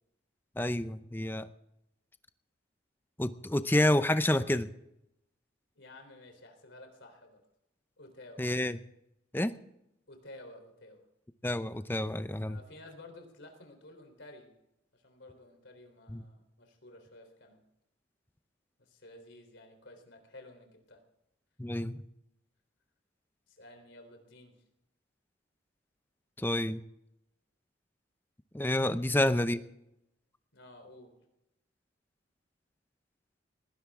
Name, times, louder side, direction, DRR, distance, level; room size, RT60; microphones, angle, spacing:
voice 1, 0.6-1.5 3.2-4.7 8.4-8.8 9.3-9.5 11.4-12.6 16.1-16.2 21.6-22.1 26.4-26.8 28.5-29.6, left 1 dB, 10° left, 12 dB, 0.6 m, -29 dB
voice 2, 5.8-7.4 8.0-8.6 10.1-11.0 12.4-14.5 14.9-17.6 18.8-21.0 23.5-24.6 28.8-29.3 30.5-31.1, left 1 dB, 65° left, 5 dB, 3.6 m, -53 dB
19.5 x 16.5 x 3.7 m, 0.84 s
head